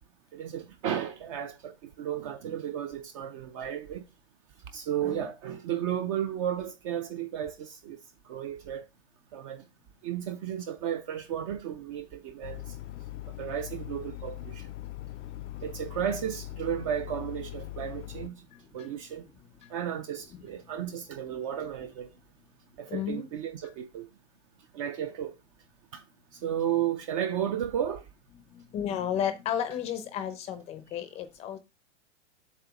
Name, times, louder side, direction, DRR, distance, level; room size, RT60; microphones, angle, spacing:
voice 1, 0.3-4.1 4.7-8.0 8.3-8.9 9.3-9.6 10.0-12.7 13.4-14.7 15.6-18.3 18.7-19.3 19.7-22.1 22.8-24.1 24.7-25.3 25.9-26.0 26.3-28.0, right 10 dB, 30° right, 0.4 m, -33 dB
sound 1, 12.4-18.3, left 14 dB, 75° left, 0.5 m, -41 dB
voice 2, 18.5-18.9 20.3-20.4 22.9-23.2 28.5-31.6, left 9 dB, 15° left, 0.5 m, -33 dB
7.8 x 2.7 x 5.8 m
hypercardioid pair, 145°, 37 cm